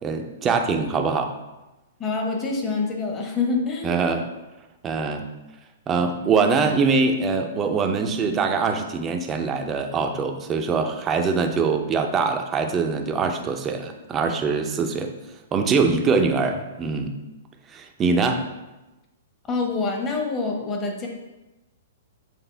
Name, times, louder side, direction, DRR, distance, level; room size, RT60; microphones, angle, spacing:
voice 1, 0.0-1.3 3.8-4.3 4.8-5.3 5.9-15.1 15.5-17.1 17.7-18.4, right 4 dB, 20° right, 4 dB, 0.7 m, -23 dB
voice 2, 2.0-4.0 19.5-21.1, left 4 dB, 25° left, 1 dB, 1.3 m, -26 dB
8.0 x 3.6 x 3.4 m, 1.0 s
hypercardioid pair, 115°, 0 cm